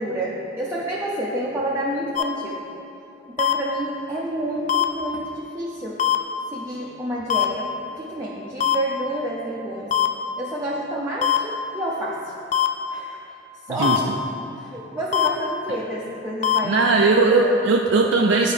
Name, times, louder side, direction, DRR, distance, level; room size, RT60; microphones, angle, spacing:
voice 1, 0.0-2.6 3.3-6.0 6.5-9.9 10.4-12.2 12.9-13.2 13.7-14.0 14.6-17.5, right 1 dB, 15° right, -5 dB, 0.6 m, -29 dB
sound 1, 2.2-2.3 3.4-3.5 4.7-4.8 6.0-6.2 7.3-7.4 8.6-8.8 9.9-10.1 11.2-11.4 12.5-12.7 13.8-14.0 15.1-15.3 16.4-16.6, left 10 dB, 40° left, 0.3 m, -20 dB
voice 2, 13.7-14.0 16.6-18.5, right 3 dB, 85° right, 0 dB, 0.4 m, -18 dB
10.5 x 4.5 x 3.3 m, 2.9 s
head